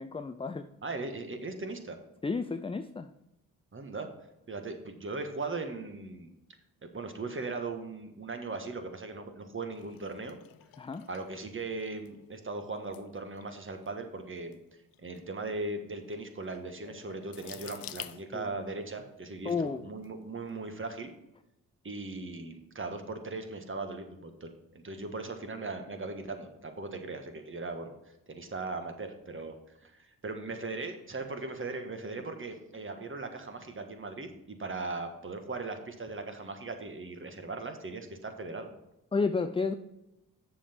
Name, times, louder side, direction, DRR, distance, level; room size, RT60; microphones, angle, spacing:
voice 1, 0.0-0.7 2.2-3.1 10.8-11.0 18.3-18.4 19.4-19.8 39.1-39.7, left 4 dB, 15° left, 9 dB, 0.5 m, -31 dB
voice 2, 0.8-2.0 3.7-4.1 4.5-6.3 6.9-10.4 11.1-14.6 15.0-21.1 21.8-24.5 24.8-27.9 28.3-29.5 29.8-38.7, right 3 dB, 30° right, 6 dB, 1.5 m, -38 dB
sound 1, 9.7-18.9 19.5-20.1 20.5-20.8, left 13 dB, 65° left, 0.6 m, -50 dB
7.1 x 7.1 x 4.4 m, 0.90 s
supercardioid pair, 50°, 38 cm